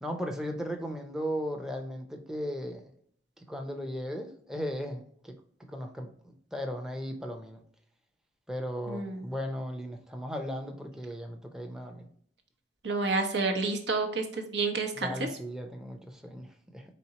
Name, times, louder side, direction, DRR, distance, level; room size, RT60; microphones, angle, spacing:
voice 1, 0.0-2.8 3.5-5.4 5.7-7.6 8.5-12.1 15.0-16.8, equal, 5° right, 0.5 m, -36 dB
voice 2, 8.9-9.2 12.8-15.1, right 3 dB, 90° right, 0.9 m, -29 dB
4.3 x 3.7 x 2.8 m
head